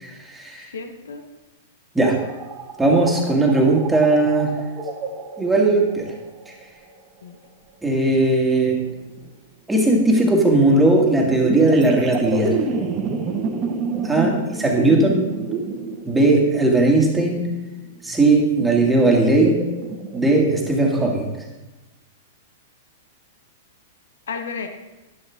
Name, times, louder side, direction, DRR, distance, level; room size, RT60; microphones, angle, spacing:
voice 1, 0.0-0.7 1.9-2.2 2.8-4.5 5.4-6.1 7.8-8.8 9.7-12.6 14.0-15.3 16.0-17.6 18.0-19.7 20.1-21.3, right 2 dB, 10° right, 0 dB, 2.1 m, -18 dB
voice 2, 0.6-1.2 7.2-7.4 14.2-15.3 24.3-24.7, left 5 dB, 75° left, 6 dB, 1.1 m, -34 dB
sound 1, 2.2-6.6 8.1-9.3 11.2-21.0, right 4 dB, 35° right, 1.3 m, -30 dB
11.0 x 10.5 x 3.6 m, 1.1 s
hypercardioid pair, 110°, 0 cm